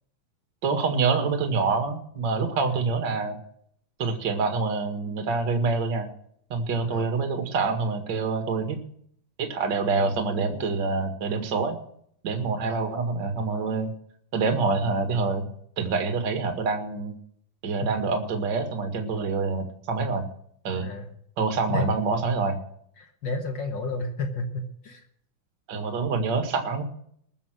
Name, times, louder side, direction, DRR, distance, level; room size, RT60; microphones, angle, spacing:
voice 1, 0.6-3.4 4.0-6.1 6.5-8.8 9.4-11.8 12.2-13.9 14.3-15.5 15.8-17.1 17.6-20.3 20.6-20.9 21.4-22.6 25.7-26.8, right 4 dB, 40° right, 6 dB, 1.8 m, -26 dB
voice 2, 20.7-21.1 21.7-21.9 23.0-25.0, left 2 dB, 60° left, 6 dB, 1.2 m, -32 dB
20.5 x 7.2 x 6.2 m, 0.67 s
omnidirectional pair, 4.3 m